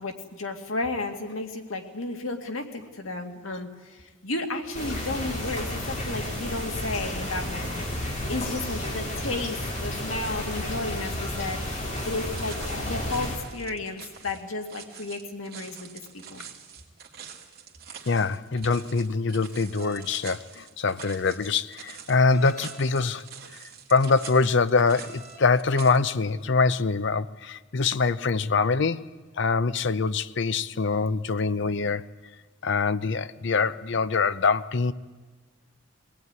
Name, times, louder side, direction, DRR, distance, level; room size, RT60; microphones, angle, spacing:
voice 1, 0.0-16.4, left 2 dB, 85° left, 2.2 m, -33 dB
sound 1, 4.7-13.4, left 1 dB, 35° left, 4.1 m, -32 dB
sound 2, 12.0-26.0, right 7 dB, 50° right, 2.4 m, -45 dB
voice 2, 18.1-23.3 23.9-29.1 29.4-32.1 32.6-34.9, left 4 dB, 60° left, 0.7 m, -24 dB
sound 3, 19.8-20.1 22.3-22.9 24.9-25.4, right 3 dB, 10° right, 4.7 m, -47 dB
22.5 x 18.0 x 9.5 m
head